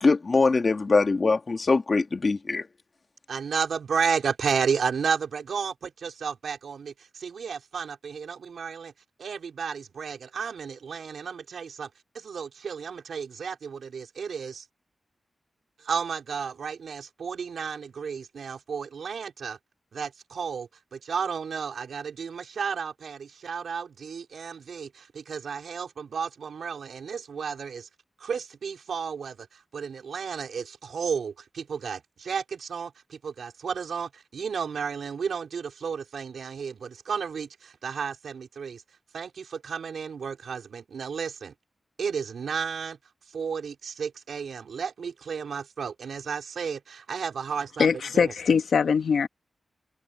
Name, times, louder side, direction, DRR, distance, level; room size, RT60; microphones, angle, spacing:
voice 1, 0.0-2.7, left 3 dB, 40° left, 1.8 m, -22 dB
voice 2, 3.3-8.9 9.2-11.9 12.1-14.6 15.8-19.6 19.9-27.9 28.2-38.8 39.1-41.5 42.0-43.0 43.3-47.9 48.1-48.3, right 6 dB, 90° right, 4.0 m, -32 dB
voice 3, 47.8-49.3, left 6 dB, 85° left, 1.0 m, -22 dB
wide cardioid pair, 125°, 0 cm